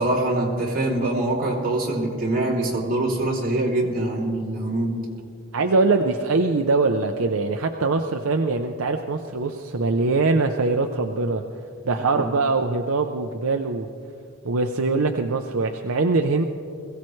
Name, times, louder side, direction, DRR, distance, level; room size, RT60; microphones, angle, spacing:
voice 1, 0.0-5.0 12.1-12.3, right 2 dB, 40° right, -4 dB, 3.1 m, -24 dB
voice 2, 5.5-11.4 11.9-13.9 14.4-16.4, right 3 dB, 70° right, 4 dB, 0.6 m, -22 dB
21.5 x 16.5 x 3.2 m, 2.5 s
head